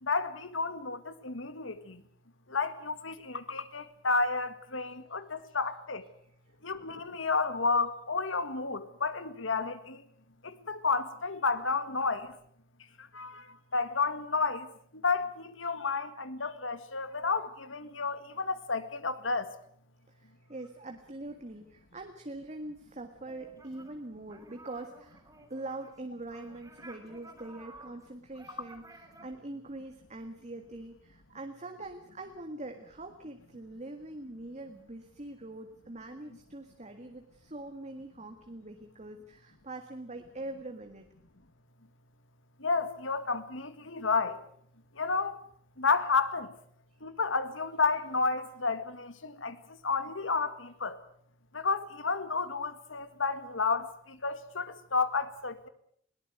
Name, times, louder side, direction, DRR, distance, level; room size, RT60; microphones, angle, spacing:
voice 1, 0.0-2.0 2.5-6.1 6.6-10.0 10.4-12.3 13.1-13.5 13.7-14.7 14.9-19.5 42.6-44.4 45.0-45.4 45.8-46.5 47.0-49.6 49.8-51.0 51.5-55.7, left 4 dB, 85° left, 1.9 m, -31 dB
voice 2, 20.2-25.2 25.5-41.1, right 2 dB, 35° right, 1.8 m, -43 dB
sound 1, 23.3-24.0 24.3-29.2, right 2 dB, 20° right, 3.8 m, -53 dB
21.5 x 18.5 x 8.2 m
head